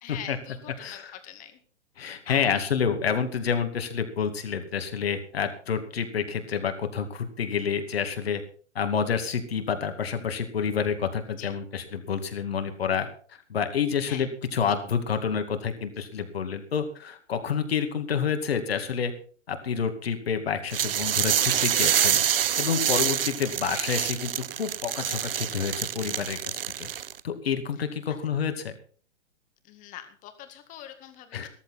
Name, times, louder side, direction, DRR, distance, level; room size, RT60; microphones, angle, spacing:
voice 1, 0.0-1.6 2.3-2.6 11.4-11.5 14.0-14.3 22.9-23.0 29.7-31.5, left 11 dB, 20° left, 8 dB, 1.9 m, -43 dB
voice 2, 0.8-1.1 2.0-8.4 8.7-13.1 13.5-19.1 19.5-22.2 22.6-26.9 27.2-28.7 31.3-31.5, left 7 dB, 55° left, 7 dB, 2.5 m, -28 dB
sound 1, 20.7-27.2, right 10 dB, 50° right, 0.6 m, -26 dB
14.5 x 14.0 x 4.3 m, 0.43 s
figure-of-eight pair, 120°, 36 cm